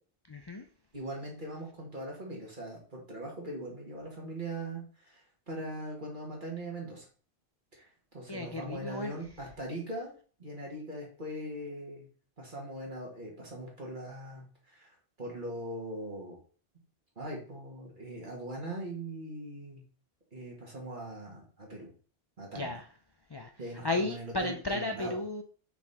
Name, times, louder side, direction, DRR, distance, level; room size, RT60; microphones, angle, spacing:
voice 1, 0.3-0.6 8.3-9.1 22.5-22.8 23.3-23.5 23.8-25.4, left 2 dB, 35° left, 0.4 m, -34 dB
voice 2, 0.9-7.1 7.7-7.9 8.1-10.1 10.4-12.1 12.4-16.4 17.2-19.8 20.3-21.9 22.4-22.8 23.6-25.2, right 1 dB, 50° right, 2.2 m, -41 dB
5.8 x 4.2 x 4.2 m
omnidirectional pair, 1.1 m